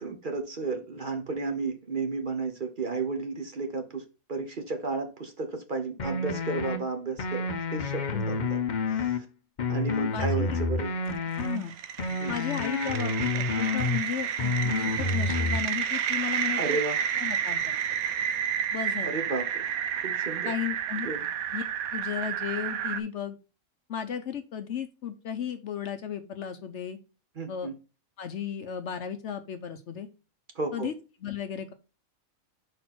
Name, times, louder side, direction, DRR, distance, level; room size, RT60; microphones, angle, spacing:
voice 1, 0.0-8.6 8.9-9.2 9.7-10.9 12.2-12.3 14.8-15.1 16.6-17.0 19.0-19.7 20.0-20.5 21.0-21.2 27.4-27.7 30.5-30.9, right 3 dB, 40° right, 5 dB, 1.0 m, -33 dB
sound 1, 6.0-6.8 7.2-9.2 9.6-11.6 12.0-14.0 14.4-15.6, left 3 dB, 45° left, 0.7 m, -29 dB
voice 2, 10.1-10.6 11.4-11.7 12.3-16.8 17.2-17.8 18.7-19.1 20.4-21.1 21.5-21.6 21.9-23.4 23.9-27.0 27.5-27.7 28.2-30.1 30.7-30.9 31.2-31.7, left 8 dB, 60° left, 9 dB, 0.9 m, -34 dB
sound 2, 11.1-23.0, right 8 dB, 90° right, 1.1 m, -31 dB
5.3 x 4.2 x 5.9 m, 0.32 s
omnidirectional pair, 1.5 m